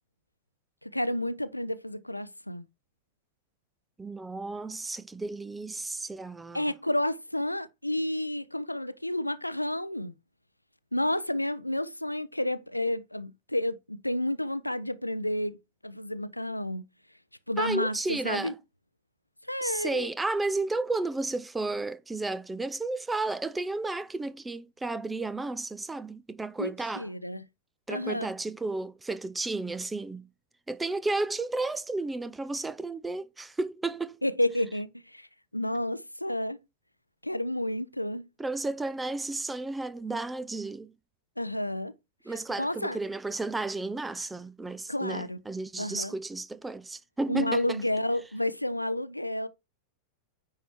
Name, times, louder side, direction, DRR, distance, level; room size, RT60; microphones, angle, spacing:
voice 1, 0.8-2.7 6.5-10.1 10.9-15.6 15.8-16.8 17.5-18.5 19.5-20.1 26.6-27.4 27.9-28.3 34.2-35.3 35.5-36.6 37.2-38.2 41.4-41.9 42.6-43.0 44.9-45.4 45.8-46.1 47.3-49.5, left 1 dB, 85° left, 0.5 m, -30 dB
voice 2, 4.0-6.6 17.6-18.6 19.6-27.1 27.9-30.3 30.7-34.2 38.4-40.9 42.3-47.8, right 3 dB, 10° right, 0.6 m, -33 dB
9.3 x 4.5 x 4.6 m
figure-of-eight pair, 90°, 0 cm